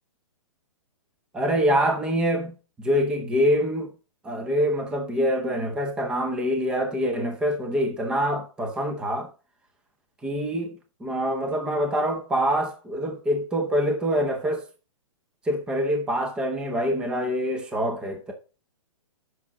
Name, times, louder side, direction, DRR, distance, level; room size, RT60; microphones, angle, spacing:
voice 1, 1.3-3.9 4.2-9.3 10.2-14.6 15.5-18.3, equal, 5° right, 0.7 m, -25 dB
8.5 x 6.0 x 4.1 m
hypercardioid pair, 165°, 17 cm